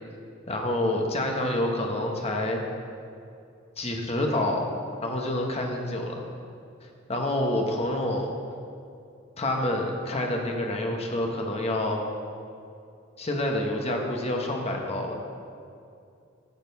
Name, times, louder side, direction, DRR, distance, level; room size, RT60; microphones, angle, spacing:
voice 1, 0.5-2.6 3.8-4.7 5.0-6.2 7.1-8.3 9.4-12.0 13.2-15.2, left 1 dB, 30° left, 1 dB, 1.1 m, -27 dB
11.0 x 6.6 x 4.7 m, 2.5 s
head